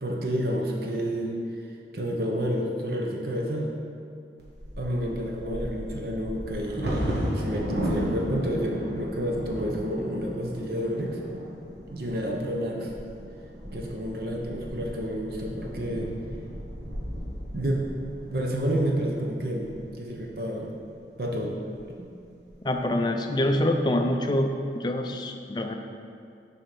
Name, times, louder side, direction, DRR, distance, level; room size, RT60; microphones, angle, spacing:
voice 1, 0.0-1.3 1.9-3.7 4.8-11.2 11.9-12.9 13.7-16.2 17.5-17.8 18.3-20.7 21.2-21.5 22.0-22.1, equal, 55° right, -1 dB, 0.8 m, -29 dB
Bird vocalization bird call bird song / Wind / Thunder, 4.4-20.3 20.9-21.0 21.4-21.8 22.2-22.7, equal, 70° right, 1.4 m, -35 dB
voice 2, 22.6-24.5 24.7-25.7, left 1 dB, 25° left, 4 dB, 0.4 m, -25 dB
7.1 x 4.3 x 5.2 m, 2.4 s
head